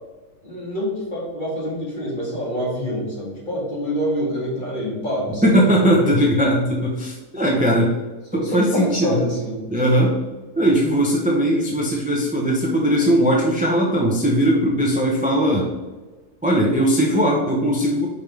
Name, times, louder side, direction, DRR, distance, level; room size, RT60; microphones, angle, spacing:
voice 1, 0.4-6.0 7.5-7.7 8.3-9.6, equal, 30° left, -4 dB, 1.9 m, -26 dB
voice 2, 5.4-7.9 8.3-9.2 9.7-10.2 10.6-15.7 16.4-18.1, equal, 10° right, -2 dB, 0.4 m, -19 dB
5.4 x 5.2 x 3.4 m, 1.2 s
omnidirectional pair, 1.7 m